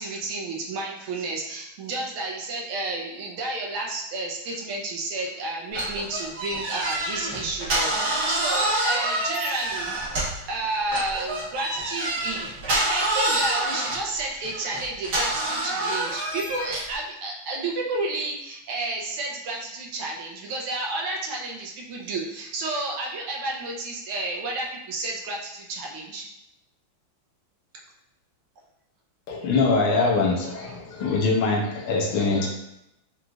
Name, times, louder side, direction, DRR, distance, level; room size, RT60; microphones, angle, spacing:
voice 1, 0.0-12.4 12.7-26.2, right 2 dB, 80° right, -1 dB, 1.6 m, -31 dB
sound 1, 5.7-10.5 10.9-16.9, right 1 dB, 50° right, 1.7 m, -27 dB
voice 2, 29.3-32.5, left 3 dB, 75° left, -1 dB, 1.6 m, -23 dB
5.0 x 3.0 x 2.4 m, 0.83 s
omnidirectional pair, 2.4 m